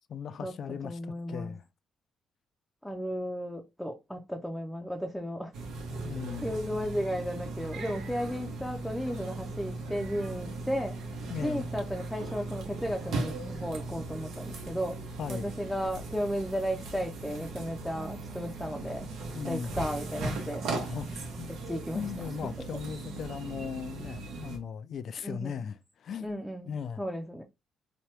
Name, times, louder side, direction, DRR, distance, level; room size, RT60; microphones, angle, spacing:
voice 1, 0.1-1.6 6.0-6.5 11.3-11.7 15.2-15.5 19.3-19.7 20.8-21.5 21.9-26.3 26.7-27.0, left 7 dB, 60° left, 0.3 m, -38 dB
voice 2, 0.8-1.5 2.8-5.5 6.4-11.0 11.4-15.0 15.3-19.1 19.5-20.6 21.5-22.1 25.2-25.6 26.2-27.4, equal, 5° left, 0.5 m, -34 dB
sound 1, 5.5-24.6, right 2 dB, 80° right, 1.0 m, -38 dB
2.9 x 2.2 x 3.2 m
cardioid pair, 90°, 0 cm